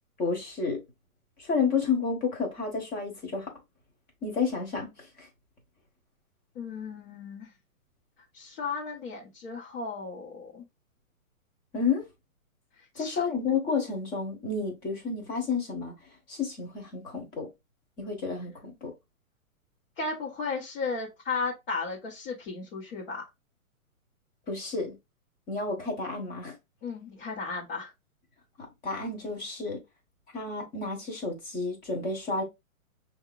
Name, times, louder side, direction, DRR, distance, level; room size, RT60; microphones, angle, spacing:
voice 1, 0.2-0.8 1.4-3.5 4.2-5.3 11.7-12.0 12.9-15.9 16.3-17.5 18.0-18.9 24.5-25.0 25.5-26.5 28.8-29.8 30.3-32.4, left 4 dB, 20° left, 1.2 m, -30 dB
voice 2, 6.5-7.5 8.3-10.6 12.9-13.2 20.0-23.2 26.8-27.9, left 4 dB, 40° left, 1.5 m, -35 dB
5.6 x 2.8 x 2.4 m
hypercardioid pair, 145°, 43 cm